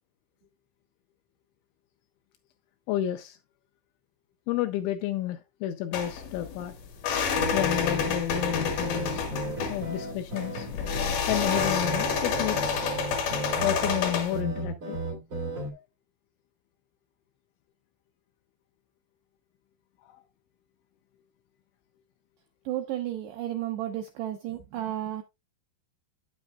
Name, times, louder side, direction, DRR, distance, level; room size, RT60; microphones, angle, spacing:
voice 1, 2.9-3.4 4.5-6.7 7.5-9.3 9.7-10.7 11.3-12.9 13.6-15.0 15.7-15.8 20.0-20.2, left 13 dB, 85° left, 2.8 m, -31 dB
sound 1, 5.9-14.4, left 6 dB, 65° left, 2.1 m, -29 dB
sound 2, 7.3-15.7, right 1 dB, 60° right, 0.8 m, -35 dB
voice 2, 22.7-25.2, right 12 dB, 80° right, 2.4 m, -32 dB
9.7 x 8.8 x 2.3 m
omnidirectional pair, 6.0 m